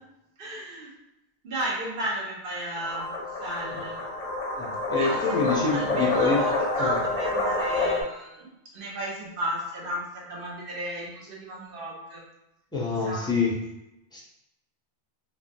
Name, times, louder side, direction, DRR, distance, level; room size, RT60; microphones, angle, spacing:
voice 1, 0.4-0.9 1.4-4.0 4.9-12.3 12.9-13.4, right 1 dB, 60° right, -3 dB, 0.9 m, -34 dB
sound 1, 2.8-8.0, left 2 dB, 45° left, 0.6 m, -28 dB
voice 2, 4.6-6.4 6.8-6.9 12.7-13.5 14.1-14.2, left 4 dB, 5° left, -5 dB, 0.4 m, -26 dB
3.1 x 2.2 x 2.6 m, 0.90 s
omnidirectional pair, 1.1 m